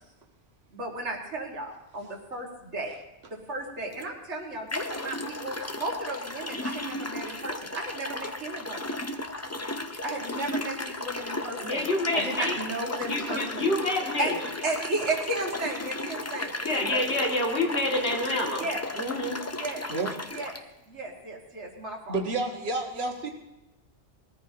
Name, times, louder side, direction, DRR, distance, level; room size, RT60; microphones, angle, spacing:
voice 1, 0.7-2.9 3.3-8.8 10.0-11.9 12.1-16.5 16.9-17.0 18.6-18.8 19.5-19.8 20.3-20.5 20.9-22.2, right 2 dB, 75° right, -1 dB, 2.2 m, -34 dB
sound 1, 3.9-4.0 4.7-20.6, left 2 dB, 20° left, 0.4 m, -35 dB
voice 2, 11.6-12.6 13.1-14.4 16.6-18.7 19.0-19.4, left 2 dB, 65° left, 0 dB, 2.5 m, -27 dB
voice 3, 22.1-23.3, right 3 dB, 60° right, 1 dB, 1.8 m, -29 dB
21.5 x 14.0 x 2.8 m, 1.0 s
omnidirectional pair, 1.2 m